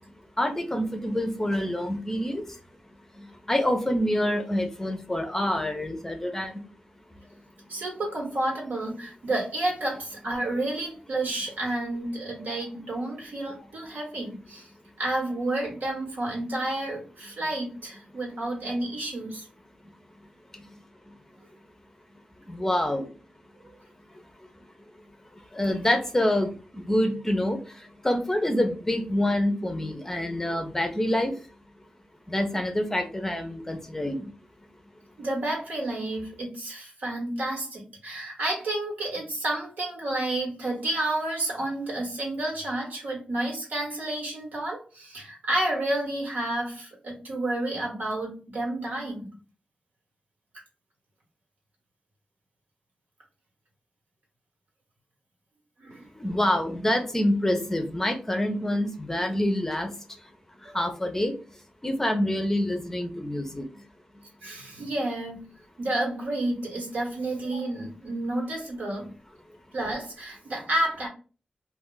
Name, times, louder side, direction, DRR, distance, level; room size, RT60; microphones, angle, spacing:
voice 1, 0.4-2.4 3.5-6.5 22.5-23.1 25.5-27.6 28.0-31.3 32.3-34.3 56.2-59.9 60.7-61.3 61.8-63.7, left 1 dB, 15° left, 6 dB, 0.5 m, -26 dB
voice 2, 7.7-14.7 15.0-19.5 35.2-49.3 55.8-56.1 60.6-60.8 64.4-65.5 65.8-69.1 69.7-71.1, right 1 dB, 80° right, -1 dB, 1.4 m, -30 dB
2.4 x 2.4 x 3.7 m, 0.36 s
wide cardioid pair, 120°, 3 cm